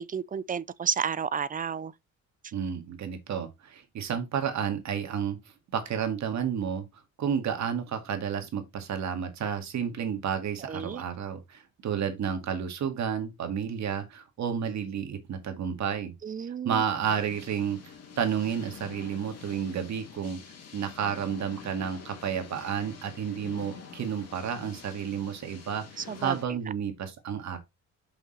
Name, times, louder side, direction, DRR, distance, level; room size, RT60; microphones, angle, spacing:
voice 1, 0.0-1.9 10.6-11.0 16.2-16.8 26.0-26.6, right 7 dB, 30° right, 0.5 m, -32 dB
voice 2, 2.5-5.4 5.7-6.8 7.2-16.1 16.6-20.4 20.7-27.6, right 7 dB, 65° right, 2.1 m, -31 dB
sound 1, 17.0-26.4, left 6 dB, 55° left, 2.5 m, -47 dB
5.8 x 5.7 x 4.2 m
cardioid pair, 90°, 30 cm